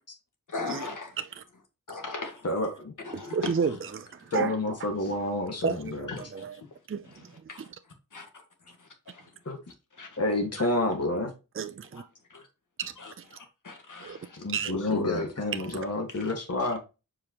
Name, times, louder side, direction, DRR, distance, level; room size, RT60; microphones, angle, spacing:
voice 1, 0.5-1.2 1.9-2.7 3.0-3.8 4.9-5.2 6.1-6.7 7.0-8.3 8.6-9.3 9.7-10.2 11.9-12.0 12.3-12.5 13.0-15.3 16.1-16.3 16.6-16.7, left 3 dB, 65° left, 1.9 m, -39 dB
voice 2, 2.4-2.9 4.3-5.8 9.5-9.6 10.2-11.3 14.4-16.8, left 1 dB, 50° left, 1.8 m, -29 dB
voice 3, 3.1-4.9 5.6-6.5 6.9-7.3 10.6-10.7 11.5-12.0 12.8-13.4 14.0-14.2 14.5-14.7 15.7-15.8, right 6 dB, 40° right, 0.5 m, -32 dB
7.4 x 4.9 x 3.0 m
wide cardioid pair, 95°, 33 cm